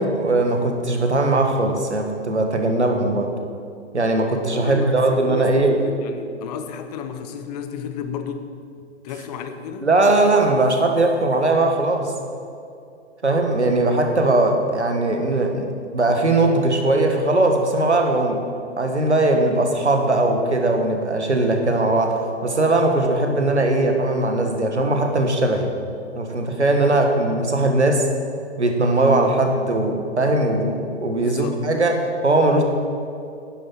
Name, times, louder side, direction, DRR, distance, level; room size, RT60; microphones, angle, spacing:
voice 1, 0.0-3.3 3.9-5.8 9.8-12.1 13.2-18.4 18.8-25.7 26.1-28.1 28.6-32.6, right 2 dB, 80° right, 3 dB, 1.7 m, -19 dB
voice 2, 4.5-8.5 9.0-9.9 13.6-14.0 26.9-27.0 31.2-31.6, left 7 dB, 35° left, 8 dB, 1.0 m, -33 dB
11.0 x 9.7 x 5.9 m, 2.5 s
figure-of-eight pair, 110°, 34 cm